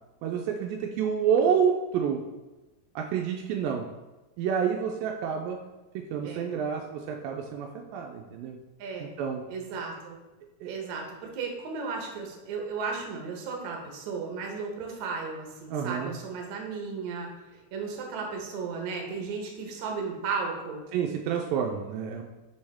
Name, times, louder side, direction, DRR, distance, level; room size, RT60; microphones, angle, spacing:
voice 1, 0.2-2.2 3.0-3.8 4.4-5.6 6.0-8.6 9.2-9.4 10.6-10.7 15.7-16.2 20.9-22.2, right 7 dB, 85° right, 2 dB, 2.3 m, -28 dB
voice 2, 8.8-9.1 9.5-10.2 10.6-20.8, right 4 dB, 65° right, 1 dB, 2.1 m, -35 dB
6.1 x 5.3 x 3.5 m, 1.1 s
omnidirectional pair, 4.1 m